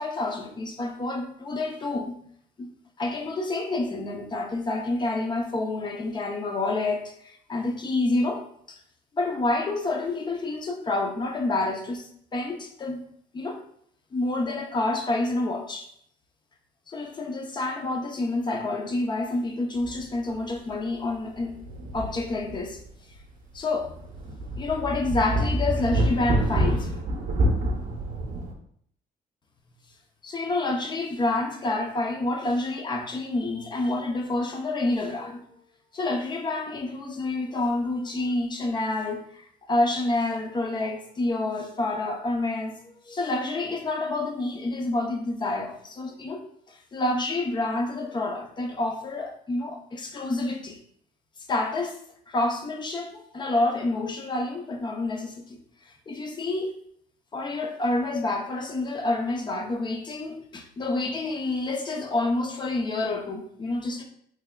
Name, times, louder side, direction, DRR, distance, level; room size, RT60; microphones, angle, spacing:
voice 1, 0.0-2.1 2.6-2.7 3.0-8.4 8.7-8.8 9.1-13.1 13.3-13.6 14.1-15.9 16.9-21.5 21.9-22.8 23.5-23.9 24.6-27.0 30.2-35.4 35.9-50.8 51.5-52.0 52.3-55.6 56.1-56.8 57.3-64.0, left 2 dB, 25° left, 3 dB, 0.6 m, -28 dB
sound 1, 19.8-20.0 20.3-20.4 21.4-22.8 23.2-23.3 23.8-28.5, right 1 dB, 50° right, 0.7 m, -27 dB
3.3 x 3.3 x 2.2 m, 0.66 s
cardioid pair, 110°, 17 cm